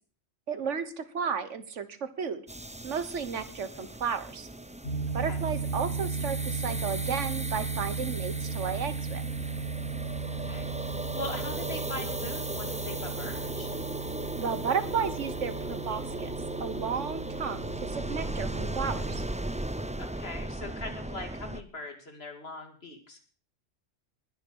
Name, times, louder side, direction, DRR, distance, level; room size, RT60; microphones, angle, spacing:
voice 1, 0.5-2.4 2.8-4.5 5.1-9.2 14.4-16.3 16.6-19.2, right 6 dB, 75° right, 12 dB, 1.5 m, -33 dB
sound 1, 2.5-21.6, right 1 dB, 10° right, 0.5 m, -37 dB
sound 2, 4.8-19.3, right 4 dB, 75° left, 2.9 m, -36 dB
voice 2, 10.2-13.7 20.0-23.2, left 2 dB, 55° left, 6 dB, 2.6 m, -41 dB
20.0 x 6.9 x 6.3 m, 0.42 s
omnidirectional pair, 1.3 m